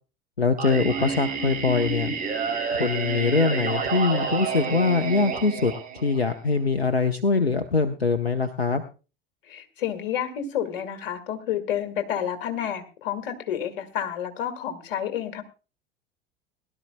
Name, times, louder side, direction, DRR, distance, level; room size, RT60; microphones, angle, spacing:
voice 1, 0.4-2.1 2.8-5.7 6.0-8.8, left 4 dB, 90° left, 10 dB, 0.7 m, -23 dB
Singing, 0.6-6.5, right 5 dB, 30° right, 4.1 m, -29 dB
voice 2, 9.4-15.4, left 9 dB, 60° left, 6 dB, 2.0 m, -30 dB
21.5 x 12.0 x 2.2 m, 0.33 s
figure-of-eight pair, 75°, 30 cm